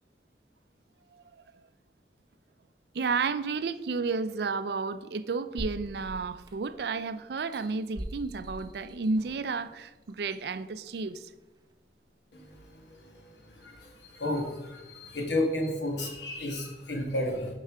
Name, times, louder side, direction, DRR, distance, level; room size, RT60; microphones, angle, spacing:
voice 1, 2.9-11.3, right 4 dB, 70° right, 0.4 m, -32 dB
sound 1, 5.6-6.9 7.4-9.5 10.1-10.2, right 1 dB, 25° right, 0.8 m, -41 dB
voice 2, 14.2-17.5, left 1 dB, 85° left, 1.5 m, -31 dB
6.7 x 5.5 x 4.8 m
head